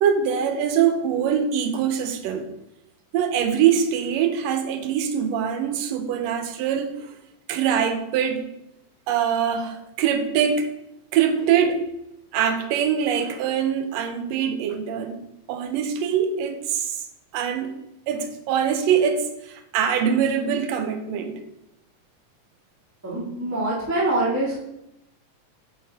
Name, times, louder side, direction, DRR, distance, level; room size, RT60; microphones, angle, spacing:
voice 1, 0.0-2.5 3.1-7.1 7.5-8.5 9.1-10.7 11.1-11.8 12.3-17.1 17.3-17.8 18.1-21.4, right 8 dB, 80° right, 1.5 m, -23 dB
voice 2, 23.0-24.6, right 1 dB, 20° right, 0.5 m, -24 dB
6.6 x 3.9 x 4.0 m
omnidirectional pair, 3.5 m